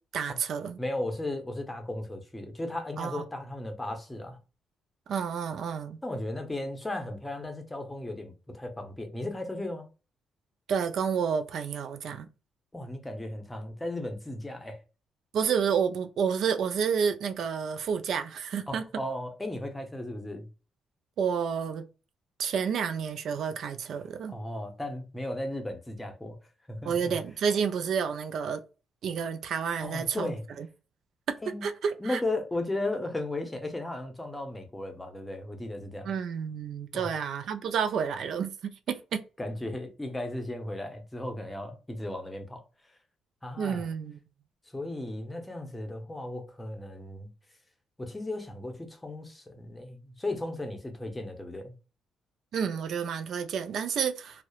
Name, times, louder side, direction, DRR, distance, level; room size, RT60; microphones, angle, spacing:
voice 1, 0.1-0.8 3.0-3.2 5.1-6.0 10.7-12.3 15.3-18.8 21.2-21.8 22.4-24.4 26.8-28.6 29.0-30.7 31.3-31.4 31.6-32.2 36.0-39.2 43.6-44.2 52.5-54.4, right 7 dB, 70° right, 0.3 m, -30 dB
voice 2, 0.8-4.4 6.0-9.9 12.7-14.8 18.7-20.5 24.3-26.4 26.7-27.1 29.8-30.4 31.4-31.7 32.0-36.1 36.9-37.1 39.4-42.6 43.4-43.9 44.7-47.3 48.0-51.7, left 1 dB, 15° left, 0.7 m, -35 dB
2.8 x 2.0 x 2.3 m
cardioid pair, 90°, 0 cm